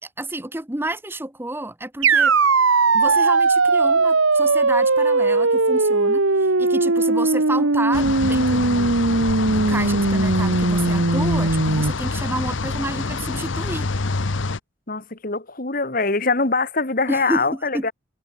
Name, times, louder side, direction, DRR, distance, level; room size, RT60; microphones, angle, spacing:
voice 1, 0.0-2.4 2.9-9.0 9.5-13.9 17.1-17.9, right 1 dB, 10° right, 1.0 m, -30 dB
sound 1, 2.0-11.9, right 3 dB, 85° right, 1.6 m, -19 dB
sound 2, 7.9-14.6, left 3 dB, 70° left, 1.0 m, -27 dB
voice 2, 14.9-17.9, left 3 dB, 45° left, 1.9 m, -23 dB
head